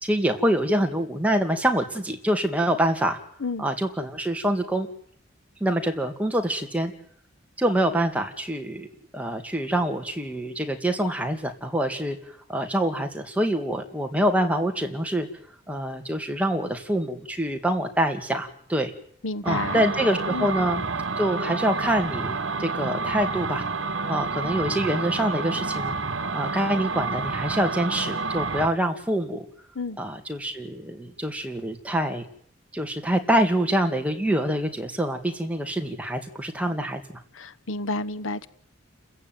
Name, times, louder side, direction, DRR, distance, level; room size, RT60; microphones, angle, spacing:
voice 1, 0.0-3.2 3.6-4.9 5.6-6.9 7.6-8.9 9.1-15.3 15.7-18.9 19.4-20.8 21.2-23.6 24.1-26.0 26.3-29.4 30.0-32.2 32.7-37.0, right 1 dB, 5° right, 2.3 m, -25 dB
voice 2, 19.2-19.9 20.3-20.5 29.7-30.0 37.3-38.5, left 3 dB, 85° left, 1.0 m, -30 dB
sound 1, 19.4-28.7, right 4 dB, 70° right, 1.9 m, -29 dB
29.5 x 15.0 x 9.4 m
head